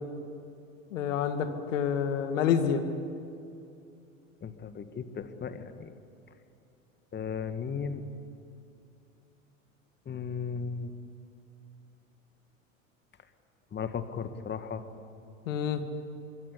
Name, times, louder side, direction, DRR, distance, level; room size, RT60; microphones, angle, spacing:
voice 1, 0.9-2.8 15.5-15.8, left 8 dB, 70° left, 8 dB, 2.3 m, -28 dB
voice 2, 4.4-5.9 7.1-8.0 10.1-10.9 13.7-14.8, left 6 dB, 25° left, 9 dB, 1.9 m, -36 dB
26.0 x 22.0 x 8.6 m, 2.6 s
hypercardioid pair, 85°, 40 cm